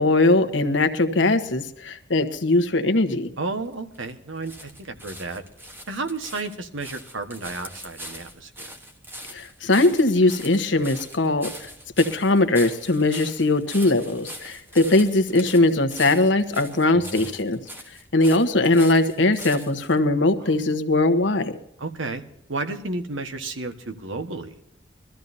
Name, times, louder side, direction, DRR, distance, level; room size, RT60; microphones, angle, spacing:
voice 1, 0.0-3.3 9.3-11.7 12.0-17.6 18.1-21.5, left 2 dB, 75° left, 9 dB, 1.2 m, -20 dB
sound 1, 3.4-20.0 20.7-20.8, equal, 10° right, 1.3 m, -42 dB
voice 2, 3.4-5.4 5.9-8.7 16.9-17.3 20.4-20.8 21.8-22.2 22.5-24.6, right 3 dB, 85° right, 7 dB, 1.4 m, -32 dB
22.0 x 13.5 x 2.7 m, 0.75 s
head